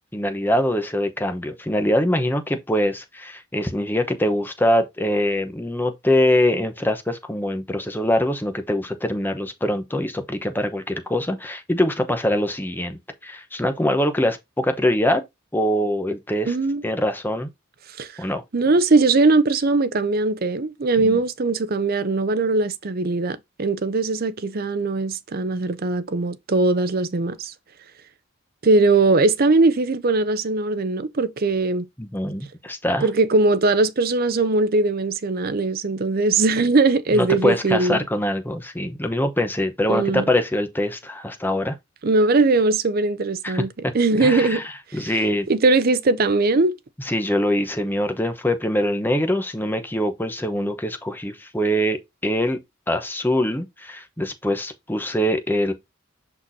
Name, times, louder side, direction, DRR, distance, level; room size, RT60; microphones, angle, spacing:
voice 1, 0.1-15.2 15.5-16.5 16.8-17.5 18.2-18.4 21.0-21.2 32.0-33.1 37.1-41.8 43.4-43.6 44.2-45.5 47.0-52.6 52.9-55.7, left 1 dB, 10° left, 0.9 m, -23 dB
voice 2, 16.5-16.8 18.0-18.1 18.5-27.5 28.6-31.9 33.0-38.0 39.9-40.2 42.0-43.7 43.9-44.6 45.5-46.7, right 3 dB, 45° right, 0.6 m, -20 dB
6.1 x 6.0 x 2.7 m
head